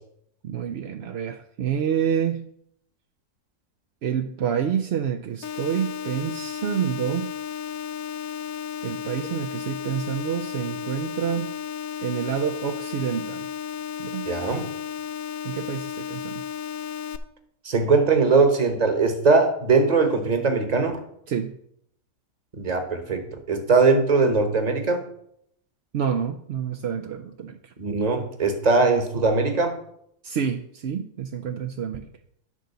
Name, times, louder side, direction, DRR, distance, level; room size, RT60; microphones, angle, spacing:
voice 1, 0.4-2.5 4.0-7.3 8.8-11.5 12.0-13.5 14.0-14.3 15.4-16.4 21.3-21.5 25.9-27.6 30.2-32.1, right 8 dB, 65° right, 5 dB, 0.6 m, -28 dB
sound 1, 5.4-17.2, left 8 dB, 70° left, 1.0 m, -33 dB
voice 2, 14.3-14.7 17.6-21.0 22.6-25.0 27.8-29.8, right 4 dB, 30° right, 7 dB, 1.1 m, -21 dB
11.0 x 3.9 x 6.8 m, 0.71 s
omnidirectional pair, 1.6 m